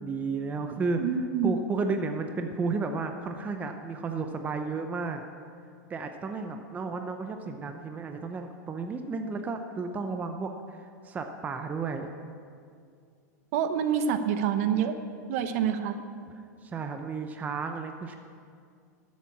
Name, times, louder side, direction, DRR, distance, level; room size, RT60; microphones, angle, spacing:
voice 1, 0.0-1.0 1.4-5.2 5.9-12.1 16.6-18.2, right 4 dB, 15° right, 5 dB, 0.7 m, -33 dB
voice 2, 1.0-1.5 13.5-15.0 15.3-16.0, right 8 dB, 55° right, 9 dB, 1.0 m, -27 dB
13.0 x 7.5 x 8.5 m, 2.3 s
supercardioid pair, 140°, 9 cm